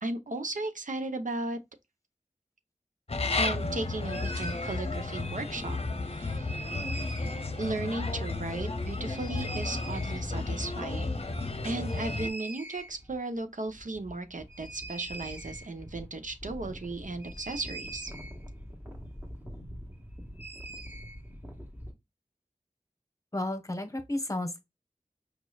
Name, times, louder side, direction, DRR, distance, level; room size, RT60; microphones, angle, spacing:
voice 1, 0.0-1.6 3.4-5.8 6.1-6.5 7.6-11.2 11.6-18.1, right 2 dB, 90° right, 0.7 m, -36 dB
sound 1, 3.1-12.3, left 3 dB, 50° left, 0.7 m, -33 dB
sound 2, 4.1-4.8 6.3-7.5 9.1-10.2 11.8-13.2 13.4-13.5 13.7-21.9, right 1 dB, 15° right, 1.4 m, -43 dB
voice 2, 23.3-24.6, left 1 dB, 25° left, 1.0 m, -32 dB
5.1 x 3.1 x 2.2 m
wide cardioid pair, 45°, 13 cm